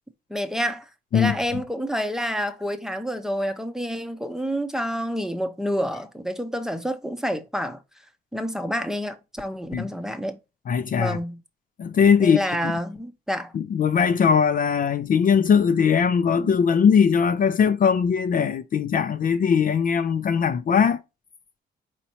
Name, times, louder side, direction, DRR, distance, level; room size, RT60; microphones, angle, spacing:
voice 1, 0.3-7.8 8.3-10.4 11.0-11.4 12.2-13.5 16.4-16.5, equal, ahead, 0.7 m, -28 dB
voice 2, 10.7-11.2 11.8-12.7 13.5-21.0, left 7 dB, 45° left, 0.5 m, -20 dB
4.3 x 4.2 x 2.8 m
cardioid pair, 90°, 20 cm